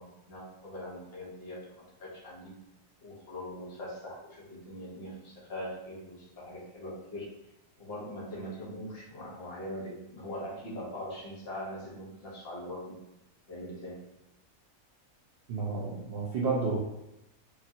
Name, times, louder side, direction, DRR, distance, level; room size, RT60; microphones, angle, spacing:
voice 1, 0.0-2.6 3.0-7.3 7.8-13.0 13.5-14.0, left 1 dB, 50° left, -4 dB, 1.0 m, -42 dB
voice 2, 15.5-16.8, right 4 dB, 65° right, -4 dB, 0.6 m, -31 dB
2.9 x 2.6 x 2.6 m, 0.90 s
omnidirectional pair, 1.5 m